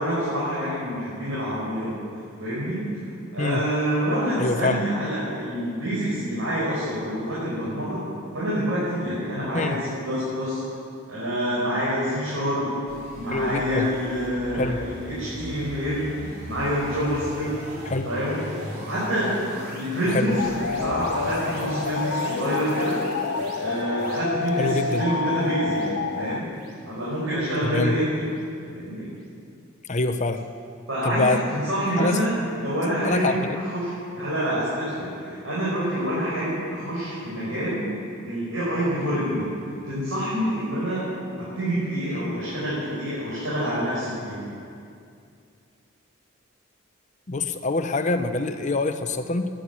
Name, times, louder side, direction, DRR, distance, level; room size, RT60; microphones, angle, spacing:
voice 1, 0.0-2.0 2.4-2.8 3.3-8.0 8.3-10.6 11.1-12.7 13.2-16.1 16.5-17.5 18.0-18.4 18.9-19.4 19.7-23.0 23.4-26.4 26.8-28.3 28.7-29.1 30.9-33.4 33.7-37.8 38.2-39.5 39.8-41.1 41.4-44.4, equal, 90° right, -9 dB, 5.2 m, -27 dB
voice 2, 4.4-4.9 9.5-9.8 13.3-13.9 14.5-14.8 17.8-18.1 20.1-20.3 24.6-25.1 27.6-28.0 29.9-30.5 31.0-31.5 32.0-32.2 33.0-33.4 42.1-42.3 47.3-49.5, left 2 dB, 35° left, 8 dB, 0.8 m, -25 dB
sound 1, 12.9-28.0, equal, 50° right, 3.6 m, -39 dB
sound 2, 20.3-26.4, left 4 dB, 80° left, 0.7 m, -29 dB
13.0 x 10.0 x 9.4 m, 2.4 s
head